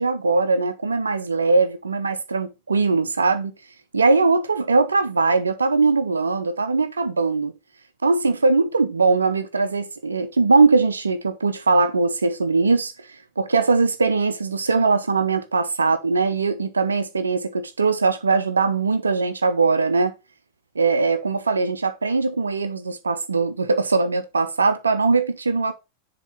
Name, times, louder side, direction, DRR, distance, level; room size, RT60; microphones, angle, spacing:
voice 1, 0.0-3.5 3.9-7.5 8.0-20.1 20.8-25.7, right 4 dB, 75° right, 0.5 m, -21 dB
7.2 x 2.9 x 5.3 m
figure-of-eight pair, 90°, 0 cm